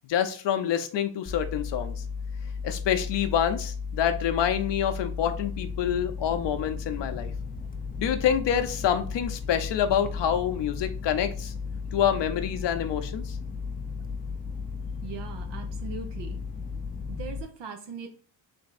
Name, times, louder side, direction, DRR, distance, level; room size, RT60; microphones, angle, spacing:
voice 1, 0.1-1.9 2.6-7.3 8.0-11.5 11.9-13.4, left 9 dB, 70° left, 8 dB, 0.7 m, -27 dB
sound 1, 1.3-17.4, left 5 dB, 20° left, 0.5 m, -35 dB
voice 2, 15.0-16.4 17.1-18.1, right 6 dB, 65° right, 4 dB, 0.8 m, -40 dB
3.5 x 3.3 x 4.1 m, 0.41 s
cardioid pair, 90°, 45 cm